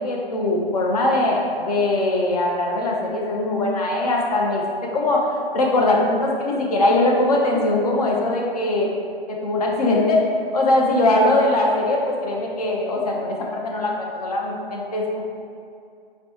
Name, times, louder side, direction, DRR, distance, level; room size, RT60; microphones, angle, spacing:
voice 1, 0.0-8.9 9.3-10.3 10.5-15.2, left 2 dB, 40° left, -1 dB, 0.5 m, -21 dB
5.0 x 2.1 x 2.8 m, 2.4 s
figure-of-eight pair, 125°, 30 cm